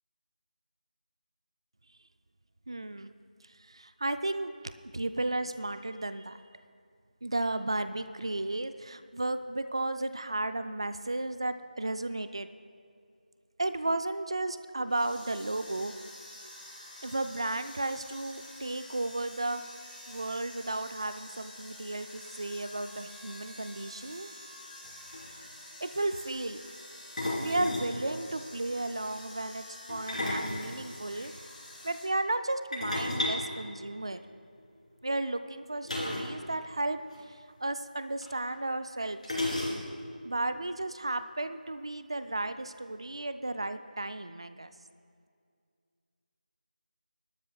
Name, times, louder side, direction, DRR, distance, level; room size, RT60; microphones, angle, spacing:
voice 1, 2.7-3.1 3.4-4.5 4.9-6.4 7.2-12.5 13.6-15.9 17.0-19.6 20.1-24.3 25.8-26.6 27.4-31.3 31.8-34.2 35.0-37.0 37.3-39.4 40.2-44.7, right 2 dB, 35° right, 11 dB, 0.3 m, -34 dB
sound 1, 14.8-32.1, left 1 dB, 5° left, 1.3 m, -48 dB
sound 2, 24.8-24.9 25.1-25.4 27.2-28.0 29.9-31.3 32.7-34.4 35.9-36.4 36.6-36.7 37.0-37.2 38.2-38.3 39.2-40.1, left 1 dB, 50° left, 3.7 m, -33 dB
22.5 x 12.5 x 2.3 m, 2.3 s
figure-of-eight pair, 180°, 5 cm